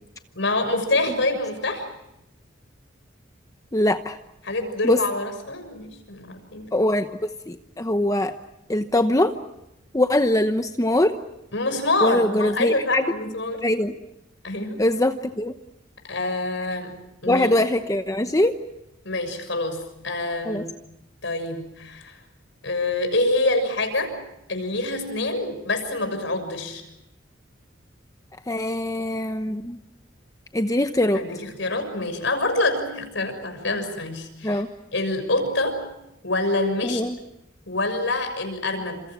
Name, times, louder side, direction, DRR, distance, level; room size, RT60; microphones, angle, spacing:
voice 1, 0.3-1.9 4.4-6.8 11.5-13.6 14.4-14.8 16.1-16.9 17.2-17.5 19.0-20.7 21.2-22.2 22.6-24.1 24.5-26.8 31.1-34.6 34.9-35.8 36.2-37.0 37.7-39.0, left 2 dB, 65° left, 7 dB, 6.5 m, -26 dB
voice 2, 3.7-4.2 4.8-5.0 6.7-8.3 8.7-9.3 9.9-11.1 12.0-13.0 13.6-13.9 14.8-15.5 17.3-18.6 20.5-20.6 28.5-29.8 30.5-31.2 34.4-34.7 36.8-37.2, left 1 dB, 15° left, 8 dB, 0.9 m, -22 dB
30.0 x 27.5 x 6.1 m, 0.88 s
head